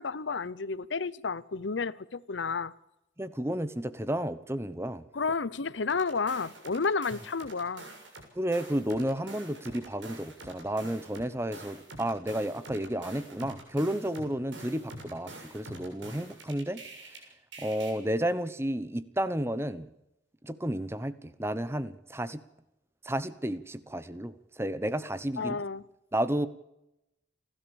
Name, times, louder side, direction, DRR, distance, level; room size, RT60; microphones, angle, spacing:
voice 1, 0.0-2.7 5.1-7.9 25.4-25.8, left 4 dB, 80° left, 20 dB, 0.7 m, -31 dB
voice 2, 3.2-5.1 8.3-16.8 17.6-19.9 20.4-22.4 23.0-25.6 26.1-26.5, right 1 dB, 15° right, 14 dB, 0.9 m, -32 dB
sound 1, 5.9-8.2 8.5-17.2 17.5-17.9, right 2 dB, 85° right, 7.1 m, -46 dB
29.5 x 12.5 x 7.1 m, 0.88 s
head